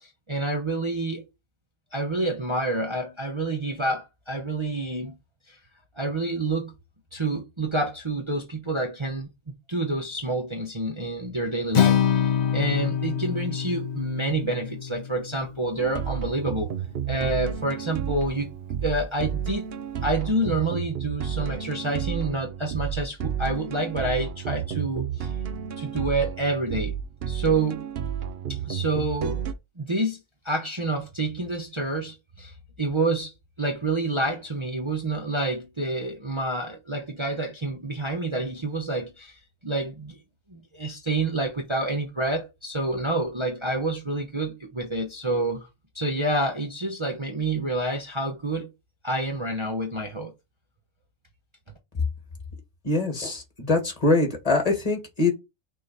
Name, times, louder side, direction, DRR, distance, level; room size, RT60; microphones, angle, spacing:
voice 1, 0.0-1.2 1.9-5.2 5.5-5.6 6.0-6.7 7.1-9.3 9.7-16.7 17.1-18.5 18.8-19.7 20.0-25.3 25.8-26.9 27.3-27.8 28.5-29.4 29.8-30.2 30.4-33.3 33.6-39.3 39.6-40.2 40.5-45.7 45.9-48.7 49.0-50.3, right 2 dB, 25° right, 0.9 m, -28 dB
Acoustic guitar, 11.7-16.0, left 8 dB, 50° left, 0.5 m, -25 dB
sound 1, 15.8-29.5, right 8 dB, 55° right, 0.8 m, -31 dB
voice 2, 52.8-55.3, left 3 dB, 30° left, 2.1 m, -23 dB
6.2 x 3.9 x 4.2 m
omnidirectional pair, 1.4 m